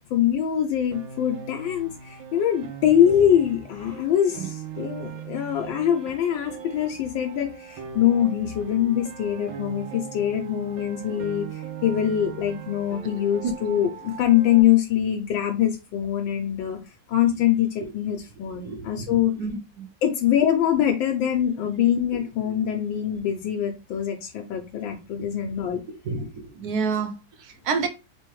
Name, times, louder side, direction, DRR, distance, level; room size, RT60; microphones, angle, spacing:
voice 1, 0.1-11.5 11.8-16.8 17.1-17.7 17.9-19.3 20.0-25.8, left 10 dB, 80° left, 1.4 m, -23 dB
Piano, 0.9-14.6, right 8 dB, 85° right, 1.4 m, -40 dB
voice 2, 18.6-19.9 22.1-22.2 26.0-27.9, right 5 dB, 65° right, 1.1 m, -29 dB
3.7 x 3.5 x 3.1 m
omnidirectional pair, 2.1 m